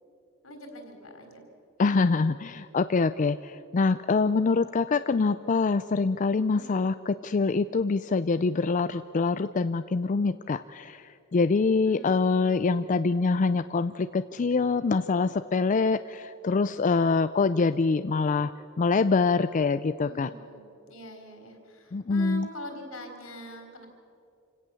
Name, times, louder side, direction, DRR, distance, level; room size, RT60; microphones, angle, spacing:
voice 1, 0.4-1.4 6.5-6.9 11.8-12.3 20.0-23.9, equal, 75° left, 4 dB, 3.9 m, -43 dB
voice 2, 1.8-18.5 18.8-20.3 21.9-22.5, left 4 dB, 40° left, 12 dB, 0.4 m, -25 dB
27.5 x 17.0 x 7.0 m, 2.6 s
head